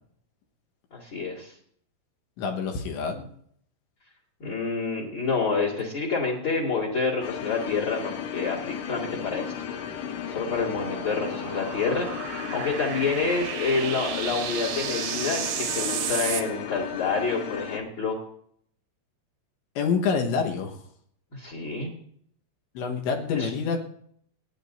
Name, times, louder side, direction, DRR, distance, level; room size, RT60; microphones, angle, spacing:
voice 1, 0.9-1.5 4.4-9.5 10.3-18.2 21.3-21.9 23.3-23.5, left 4 dB, 40° left, -2 dB, 1.9 m, -28 dB
voice 2, 2.4-3.3 19.8-20.8 22.8-23.8, left 5 dB, 70° left, 2 dB, 3.4 m, -27 dB
sound 1, 7.2-17.8, left 9 dB, 85° left, 3.7 m, -35 dB
sound 2, 8.9-16.4, right 9 dB, 70° right, 2.6 m, -34 dB
29.0 x 10.0 x 2.7 m, 0.66 s
omnidirectional pair, 5.8 m